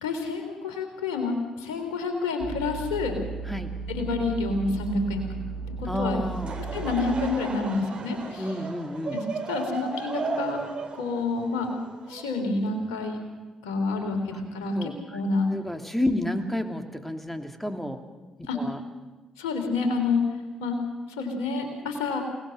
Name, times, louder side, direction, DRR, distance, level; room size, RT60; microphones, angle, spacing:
voice 1, 0.0-3.2 3.9-5.3 5.8-6.2 6.7-8.5 9.1-10.6 10.9-11.7 12.1-13.2 13.6-15.5 16.1-16.2 18.5-18.6 19.4-20.2 20.6-20.8 21.2-22.2, left 3 dB, 75° left, 4 dB, 3.3 m, -28 dB
sound 1, 2.4-7.3, right 4 dB, 75° right, 7.3 m, -35 dB
voice 2, 5.9-6.6 8.4-9.2 14.3-14.4 14.7-14.9 15.5-18.0 18.5-18.8, left 1 dB, 5° left, 5 dB, 2.9 m, -30 dB
Laughter / Crowd, 6.2-12.7, right 4 dB, 50° right, 3.2 m, -35 dB
28.5 x 18.0 x 6.5 m, 1.3 s
figure-of-eight pair, 40°, 2 cm